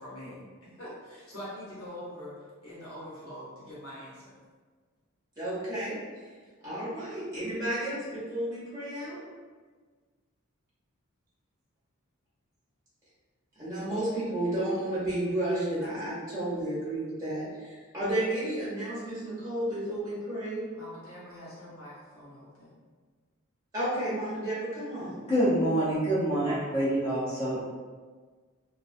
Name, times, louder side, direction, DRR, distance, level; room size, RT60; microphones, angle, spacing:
voice 1, 0.0-2.3 2.6-4.2 20.7-22.7, equal, 70° left, -8 dB, 1.0 m, -44 dB
voice 2, 5.4-6.0 6.6-9.2 13.6-20.6 23.7-25.2, right 1 dB, 15° right, -10 dB, 0.7 m, -32 dB
voice 3, 25.3-27.6, right 1 dB, 30° left, -11 dB, 0.6 m, -26 dB
2.3 x 2.2 x 2.4 m, 1.5 s
head